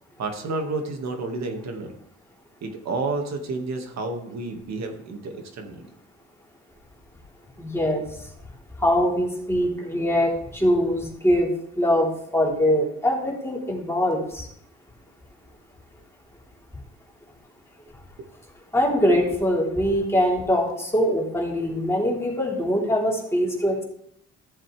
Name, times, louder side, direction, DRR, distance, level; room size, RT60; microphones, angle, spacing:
voice 1, 0.2-1.9 2.6-5.8 18.2-18.3, right 3 dB, 60° right, 4 dB, 2.0 m, -30 dB
voice 2, 7.6-8.0 8.8-11.5 11.8-14.5 18.7-23.8, equal, 10° left, -3 dB, 3.7 m, -23 dB
15.0 x 7.6 x 3.4 m, 0.71 s
cardioid pair, 90°, 30 cm